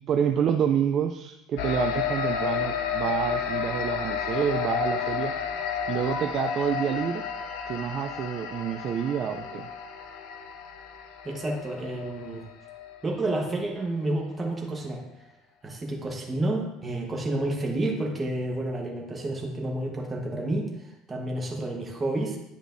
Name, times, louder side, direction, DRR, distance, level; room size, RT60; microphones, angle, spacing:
voice 1, 0.1-5.3 5.9-7.2 7.7-9.7, right 8 dB, 35° right, 6 dB, 0.3 m, -28 dB
sound 1, 1.6-13.4, left 7 dB, 75° left, 0.6 m, -32 dB
voice 2, 11.2-12.4 13.0-15.0 15.6-22.4, right 2 dB, 15° right, 0 dB, 1.1 m, -30 dB
10.0 x 5.0 x 2.6 m, 0.85 s
cardioid pair, 165°, 0 cm